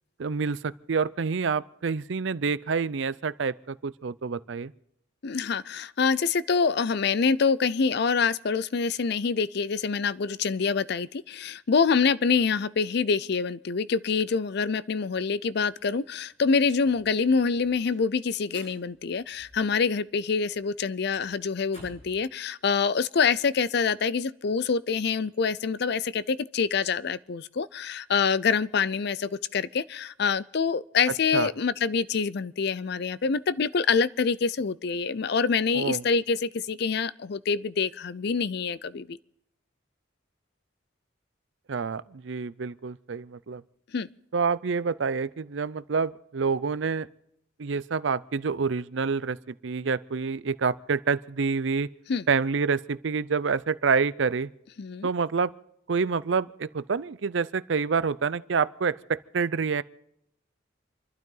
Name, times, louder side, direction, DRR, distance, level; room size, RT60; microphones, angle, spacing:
voice 1, 0.2-4.7 31.3-31.5 35.7-36.0 41.7-43.6 44.3-47.1 47.6-49.4 49.6-51.9 52.3-54.5 55.0-55.5 55.9-59.8, right 5 dB, 65° right, 0.5 m, -27 dB
voice 2, 5.2-39.2 43.9-44.1 52.1-52.2 54.8-55.1, left 5 dB, 55° left, 0.5 m, -26 dB
sound 1, 16.1-20.0 20.3-22.2, equal, 35° left, 8.0 m, -53 dB
28.5 x 12.0 x 3.9 m
head